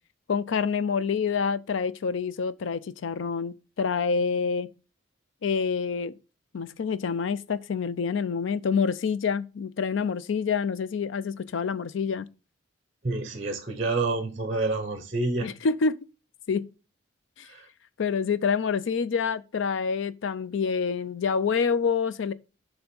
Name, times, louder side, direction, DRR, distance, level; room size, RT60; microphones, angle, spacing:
voice 1, 0.3-4.7 5.4-6.1 6.5-12.3 15.4-16.0 16.5-16.7 17.4-17.5 18.0-22.3, left 5 dB, 70° left, 0.4 m, -27 dB
voice 2, 13.0-15.5 17.4-17.7, right 3 dB, 35° right, 0.7 m, -28 dB
6.9 x 3.3 x 5.2 m
head